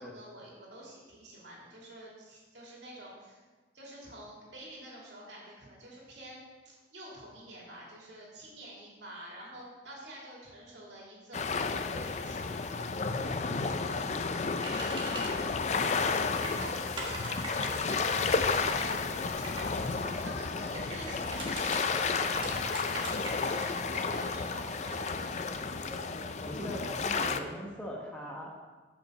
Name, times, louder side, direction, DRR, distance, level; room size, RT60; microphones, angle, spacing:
voice 1, 0.0-3.4 3.7-6.4 6.6-12.7 15.9-17.9 18.4-19.1 19.8-23.1 23.4-25.6, right 1 dB, 70° right, -4 dB, 2.9 m, -47 dB
sound 1, 11.3-27.4, left 4 dB, 35° left, 0.4 m, -32 dB
sound 2, 14.6-15.3 15.8-16.1 16.4-19.7 20.7-21.8 22.3-24.3, right 2 dB, 25° right, 1.4 m, -41 dB
voice 2, 26.5-28.5, equal, 5° left, -3 dB, 1.0 m, -40 dB
7.2 x 5.8 x 6.4 m, 1.3 s
head